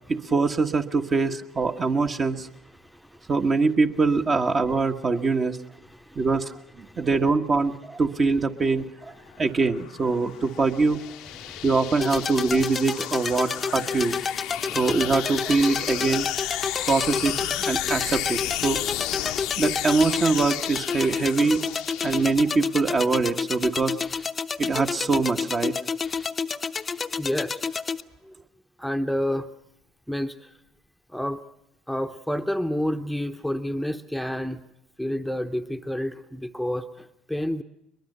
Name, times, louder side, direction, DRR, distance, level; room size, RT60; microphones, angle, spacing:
voice 1, 0.1-2.5 3.3-5.6 6.1-8.9 9.4-11.0 11.6-14.2 14.7-16.3 16.9-18.8 19.6-21.6 22.0-24.0 24.6-25.7, right 4 dB, 35° right, 5 dB, 1.4 m, -23 dB
voice 2, 2.8-3.3 5.8-6.2 6.9-7.1 9.2-9.4 11.4-11.7 14.5-14.8 27.2-27.6 28.2-28.3 28.8-29.5 30.1-30.5 31.1-31.4 31.9-34.6 35.0-37.6, equal, ahead, 7 dB, 0.9 m, -30 dB
sound 1, 9.3-22.7, left 15 dB, 65° left, 0.8 m, -33 dB
sound 2, 12.0-28.0, left 5 dB, 30° left, 0.7 m, -30 dB
22.5 x 21.5 x 6.7 m, 0.81 s
hypercardioid pair, 65°, 0 cm